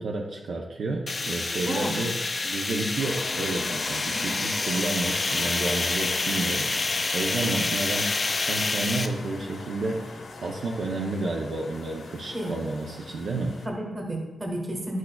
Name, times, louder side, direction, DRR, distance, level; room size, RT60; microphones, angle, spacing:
voice 1, 0.0-2.2 2.4-8.2 8.5-13.6, right 2 dB, 60° right, 1 dB, 0.6 m, -31 dB
sound 1, 1.1-9.1, left 3 dB, 25° left, 0.4 m, -28 dB
sound 2, 3.0-13.7, left 3 dB, 55° left, 0.8 m, -40 dB
voice 2, 13.6-15.0, right 1 dB, 20° right, 0 dB, 1.4 m, -32 dB
11.0 x 6.4 x 2.3 m, 1.2 s
wide cardioid pair, 180°, 0 cm